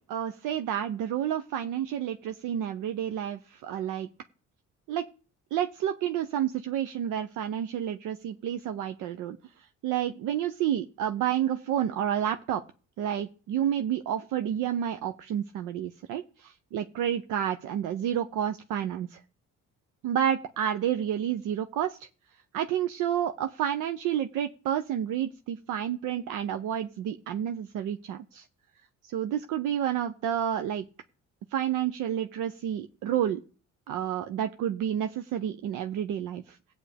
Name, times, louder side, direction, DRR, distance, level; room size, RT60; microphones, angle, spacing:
voice 1, 0.1-4.1 4.9-5.1 5.5-12.6 13.0-19.2 20.0-22.1 22.5-28.5 29.1-30.9 31.5-33.4 33.9-36.6, right 10 dB, 90° right, 8 dB, 0.6 m, -30 dB
16.0 x 8.6 x 3.4 m, 0.38 s
cardioid pair, 90°, 30 cm